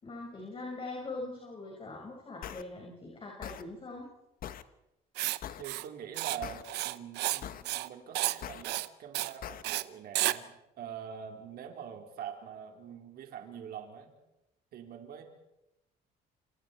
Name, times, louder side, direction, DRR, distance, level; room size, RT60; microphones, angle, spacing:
voice 1, 0.0-4.1, left 2 dB, 30° left, 0 dB, 5.8 m, -42 dB
sound 1, 2.4-2.6 3.4-3.6 4.4-4.6 5.4-5.6 6.4-6.6 7.4-7.6 8.4-8.6 9.4-9.6, left 10 dB, 60° left, 1.3 m, -41 dB
Writing, 5.2-5.4 5.6-5.9 6.2-6.4 6.6-7.4 7.7-7.9 8.1-8.4 8.6-8.9 9.1-9.3 9.6-9.8 10.2-10.4, right 17 dB, 80° right, 0.9 m, -31 dB
voice 2, 5.6-14.1 14.7-15.2, right 8 dB, 65° right, 3 dB, 4.2 m, -44 dB
29.5 x 27.0 x 4.6 m, 0.90 s
cardioid pair, 110°, 17 cm